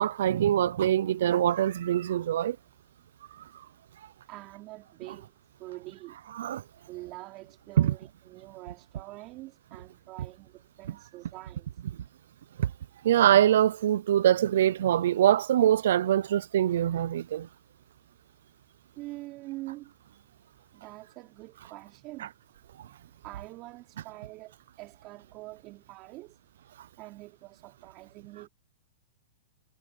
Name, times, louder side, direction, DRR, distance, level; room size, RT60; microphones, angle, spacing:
voice 1, 0.0-2.6 6.4-6.6 7.8-7.9 12.6-12.7 13.0-17.5 22.2-22.3, right 11 dB, 70° right, 0.5 m, -23 dB
voice 2, 4.3-5.3 5.6-6.2 6.8-11.7 19.0-19.9 20.7-22.3 22.9-23.0 23.2-26.4 27.0-28.5, right 20 dB, 40° right, 5.0 m, -45 dB
hypercardioid pair, 135°, 0 cm